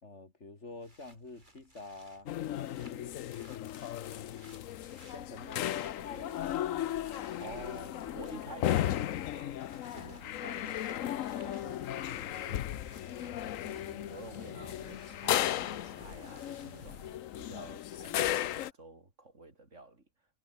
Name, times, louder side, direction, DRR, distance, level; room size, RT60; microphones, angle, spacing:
voice 1, 0.0-3.2 5.1-6.4 8.2-8.4, left 3 dB, 60° left, 3.7 m, -49 dB
sound 1, 0.7-17.2, right 1 dB, 35° right, 6.5 m, -58 dB
sound 2, 2.3-18.7, left 12 dB, 85° left, 1.1 m, -35 dB
sound 3, 6.0-14.0, right 3 dB, 90° right, 4.2 m, -60 dB
voice 2, 7.4-12.8 13.2-17.0 17.4-20.1, right 2 dB, 65° right, 4.5 m, -50 dB
omnidirectional pair, 1.3 m